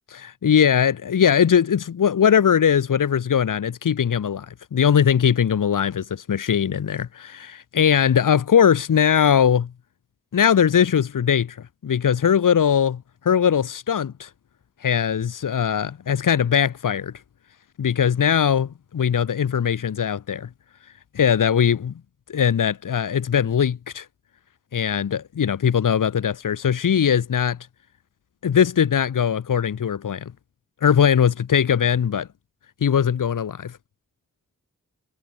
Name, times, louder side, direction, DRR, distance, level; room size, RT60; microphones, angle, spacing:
voice 1, 0.1-9.7 10.3-11.6 11.8-14.3 14.8-17.1 17.8-20.5 21.1-21.9 22.3-24.1 24.7-27.6 28.4-30.3 30.8-32.3 32.8-33.7, left 8 dB, 75° left, 0.9 m, -20 dB
wide cardioid pair, 75°, 32 cm